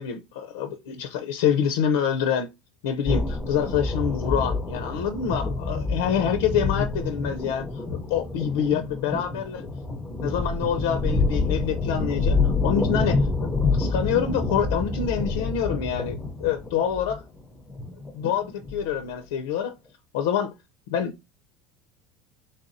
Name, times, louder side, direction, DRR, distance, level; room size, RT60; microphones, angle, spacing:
voice 1, 0.0-2.5 2.8-9.7 10.2-17.2 18.1-19.7 20.1-20.5 20.9-21.3, left 8 dB, 85° left, 0.5 m, -26 dB
sound 1, 3.1-19.2, left 3 dB, 10° left, 0.5 m, -27 dB
4.1 x 3.4 x 2.5 m
cardioid pair, 175°, 0 cm